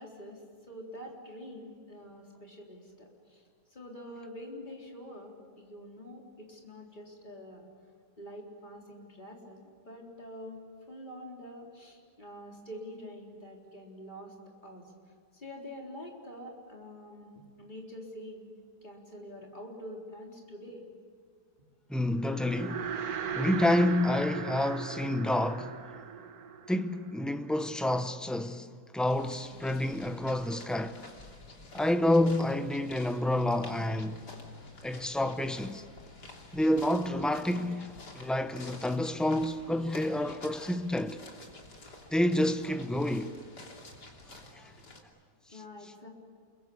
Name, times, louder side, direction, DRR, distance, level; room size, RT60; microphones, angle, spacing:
voice 1, 0.0-7.7 8.2-14.9 15.3-17.3 17.6-18.5 18.8-20.9 45.5-46.1, equal, 25° left, 4.1 m, -46 dB
voice 2, 21.9-22.9 23.3-25.8 26.7-31.1 31.7-34.3 34.8-35.8 36.5-41.2 42.1-43.4 44.5-44.7, left 1 dB, ahead, 0.3 m, -29 dB
sound 1, 22.2-27.7, right 7 dB, 65° right, 1.5 m, -38 dB
sound 2, 29.1-45.0, left 2 dB, 80° left, 3.7 m, -49 dB
28.5 x 23.0 x 8.5 m
omnidirectional pair, 1.8 m